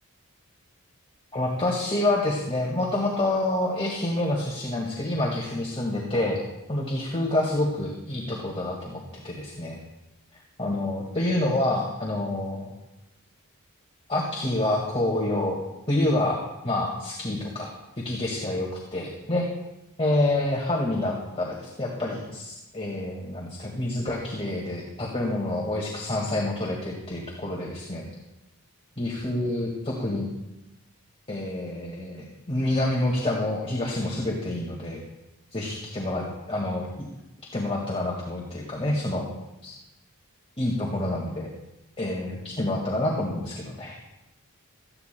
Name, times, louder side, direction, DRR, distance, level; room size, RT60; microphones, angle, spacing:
voice 1, 1.3-6.4 6.7-9.0 9.2-9.8 10.6-12.7 14.1-15.6 15.9-19.5 20.0-28.0 29.0-30.3 31.3-35.0 35.5-37.1 37.5-39.3 39.6-39.7 40.6-41.5 42.0-44.0, left 1 dB, 25° left, -3 dB, 1.9 m, -27 dB
18.0 x 14.0 x 2.3 m, 0.95 s
head